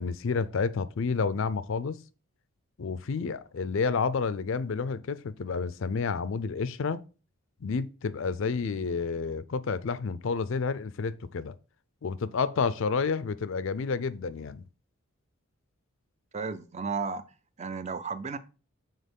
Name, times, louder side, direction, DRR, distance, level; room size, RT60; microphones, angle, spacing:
voice 1, 0.0-2.0 2.8-7.0 7.6-11.5 12.0-14.6, left 5 dB, 60° left, 0.4 m, -30 dB
voice 2, 16.3-17.2 17.6-18.4, right 4 dB, 30° right, 0.5 m, -33 dB
6.5 x 3.9 x 5.3 m
head